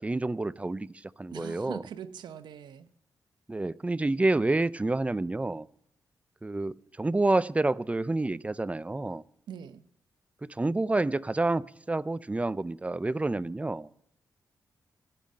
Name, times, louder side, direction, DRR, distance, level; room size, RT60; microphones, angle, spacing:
voice 1, 0.0-1.8 3.5-5.7 6.4-9.2 10.4-13.9, right 2 dB, 20° right, 19 dB, 0.5 m, -28 dB
voice 2, 1.3-2.9 9.5-9.8, right 8 dB, 85° right, 12 dB, 0.8 m, -42 dB
16.5 x 5.8 x 8.4 m, 0.73 s
cardioid pair, 65°, 7 cm